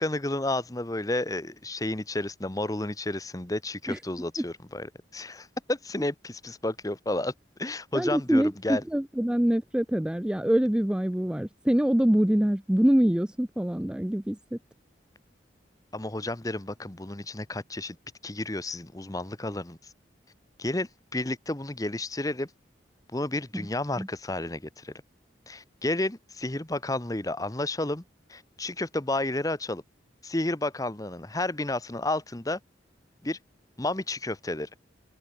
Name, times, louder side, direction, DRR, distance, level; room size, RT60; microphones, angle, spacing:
voice 1, 0.0-7.3 7.6-8.8 15.9-18.0 18.2-19.8 20.6-22.5 23.1-24.9 25.5-28.0 28.3-29.8 30.2-32.6 33.2-33.4 33.8-34.7, left 2 dB, 20° left, 1.0 m, -31 dB
voice 2, 7.9-14.6 23.5-23.7 24.0-24.1, equal, 5° right, 0.3 m, -25 dB
head